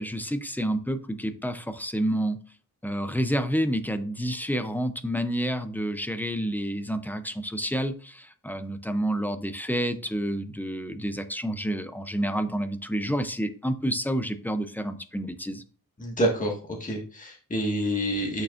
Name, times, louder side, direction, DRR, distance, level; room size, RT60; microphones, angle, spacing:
voice 1, 0.0-2.4 2.8-15.6, equal, 5° left, 0.5 m, -29 dB
voice 2, 16.0-16.5 16.8-18.4, equal, 20° left, 1.6 m, -27 dB
8.6 x 6.0 x 2.5 m
wide cardioid pair, 150°, 35 cm